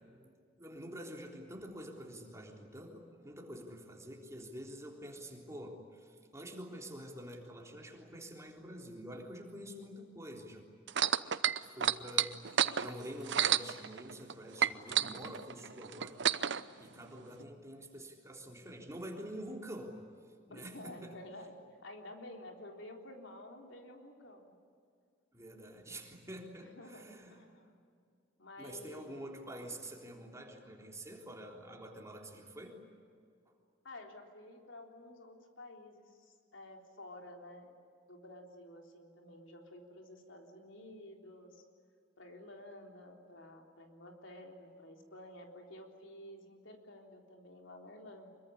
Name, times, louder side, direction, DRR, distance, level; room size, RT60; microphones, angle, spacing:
voice 1, 0.0-10.6 11.6-16.2 16.8-20.0 20.5-21.1 25.3-27.4 28.6-32.8, equal, 15° right, 1 dB, 3.6 m, -47 dB
sound 1, 10.9-14.3 14.6-16.6 17.4-17.5, right 9 dB, 65° right, 0.8 m, -30 dB
voice 2, 20.5-21.5 21.8-24.5 26.6-27.8 28.4-29.2 33.8-37.8 38.1-41.6 42.2-48.3, left 1 dB, 75° left, 2 dB, 3.7 m, -51 dB
25.5 x 23.0 x 9.9 m, 2.3 s
head